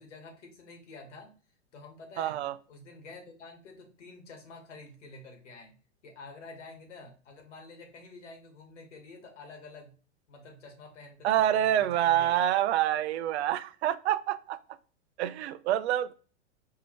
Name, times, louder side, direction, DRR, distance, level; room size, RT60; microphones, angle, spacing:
voice 1, 0.0-1.3 1.7-2.4 2.7-5.7 6.0-9.9 10.3-12.3, left 3 dB, 75° left, 3 dB, 1.5 m, -49 dB
voice 2, 2.2-2.5 11.2-14.6 15.2-16.1, right 12 dB, 65° right, 14 dB, 0.5 m, -27 dB
4.7 x 2.7 x 3.0 m, 0.38 s
hypercardioid pair, 110°, 36 cm